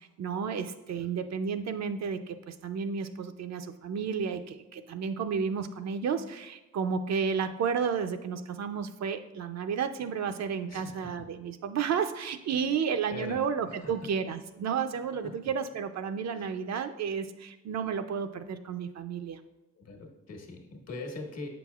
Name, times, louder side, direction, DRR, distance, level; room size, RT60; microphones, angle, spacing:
voice 1, 0.0-19.4, right 6 dB, 65° right, 9 dB, 0.5 m, -32 dB
voice 2, 10.7-11.3 13.1-14.1 15.2-15.3 16.3-16.5 19.8-21.5, left 2 dB, 60° left, 2 dB, 1.2 m, -42 dB
7.7 x 5.9 x 2.3 m, 1.0 s
cardioid pair, 75°, 29 cm